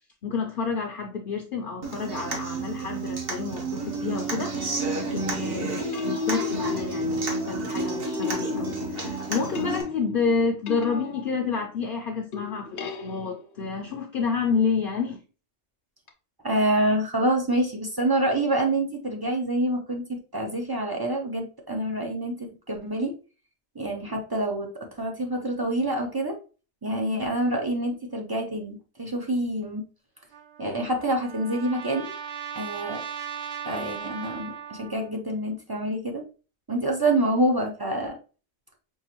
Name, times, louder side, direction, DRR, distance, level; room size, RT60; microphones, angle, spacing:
voice 1, 0.2-15.2, left 5 dB, 60° left, 0.7 m, -29 dB
Human voice / Acoustic guitar, 1.8-9.8, right 2 dB, 60° right, 1.2 m, -30 dB
sound 1, 4.2-4.5 5.9-11.8 12.3-13.7 16.1-16.2, left 6 dB, 90° left, 1.0 m, -37 dB
voice 2, 16.4-23.1 23.7-26.3 26.8-29.8 30.6-32.1 32.6-33.0 33.6-36.2 36.7-38.2, right 1 dB, 30° right, 0.5 m, -27 dB
Trumpet, 30.3-35.1, right 8 dB, 75° right, 0.9 m, -38 dB
5.4 x 2.5 x 2.9 m
omnidirectional pair, 1.1 m